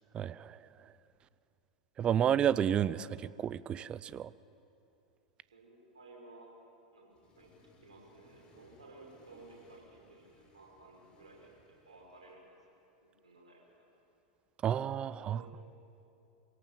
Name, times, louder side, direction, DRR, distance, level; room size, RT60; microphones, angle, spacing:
voice 1, 0.1-0.7 2.0-4.3 14.6-15.4, right 9 dB, 30° right, 18 dB, 0.5 m, -31 dB
voice 2, 5.5-6.5 6.9-7.5 7.8-12.4 13.2-13.8 15.2-15.5, right 2 dB, 75° right, -2 dB, 6.3 m, -56 dB
Accelerating revving vroom, 7.1-12.3, left 2 dB, 30° left, 4.4 m, -64 dB
25.5 x 17.5 x 7.6 m, 2.8 s
figure-of-eight pair, 90°, 4 cm